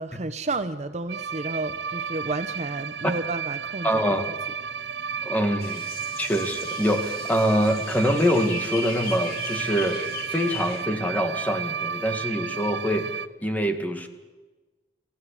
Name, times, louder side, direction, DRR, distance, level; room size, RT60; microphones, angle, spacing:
voice 1, 0.0-3.9, right 2 dB, 40° right, 11 dB, 0.8 m, -31 dB
sound 1, 1.1-13.3, right 7 dB, 80° right, 0.7 m, -33 dB
voice 2, 3.8-4.3 5.2-5.8 6.2-10.0 10.3-13.1 13.4-14.1, equal, 10° left, 6 dB, 1.9 m, -24 dB
sound 2, 5.6-10.8, left 5 dB, 55° left, 2.4 m, -38 dB
25.0 x 15.5 x 8.4 m, 1.3 s
head